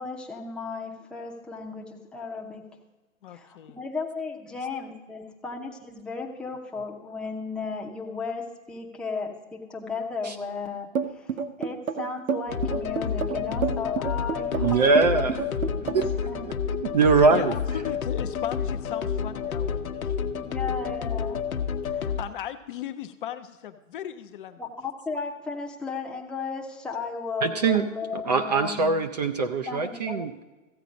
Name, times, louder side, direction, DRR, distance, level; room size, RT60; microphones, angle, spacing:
voice 1, 0.0-2.6 3.3-16.0 16.3-16.4 20.4-21.4 21.9-22.0 24.6-29.0 29.7-30.4, left 4 dB, ahead, -2 dB, 0.7 m, -35 dB
voice 2, 3.2-3.8 17.3-20.6 21.8-24.6, left 10 dB, 40° left, 9 dB, 0.6 m, -38 dB
sound 1, 11.0-16.2, right 6 dB, 90° right, 1.0 m, -29 dB
sound 2, 12.5-22.2, left 7 dB, 90° left, 1.0 m, -30 dB
voice 3, 14.6-15.4 15.9-16.5 16.9-17.6 27.4-30.4, right 4 dB, 30° right, 8 dB, 0.4 m, -23 dB
14.5 x 8.2 x 5.1 m, 1.2 s
hypercardioid pair, 145°, 41 cm